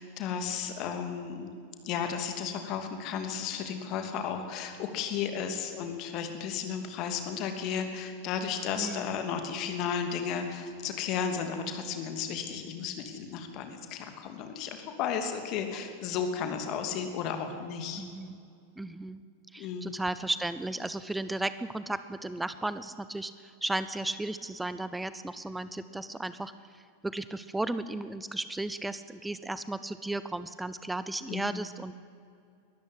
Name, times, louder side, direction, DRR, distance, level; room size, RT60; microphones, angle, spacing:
voice 1, 0.0-1.5 1.8-18.0 19.6-20.0 31.3-31.6, left 7 dB, 40° left, 6 dB, 2.8 m, -34 dB
voice 2, 8.8-9.2 18.0-18.4 18.8-19.2 19.5-31.9, right 2 dB, 5° right, 13 dB, 0.7 m, -35 dB
22.0 x 13.5 x 9.8 m, 2.4 s
figure-of-eight pair, 90°, 0 cm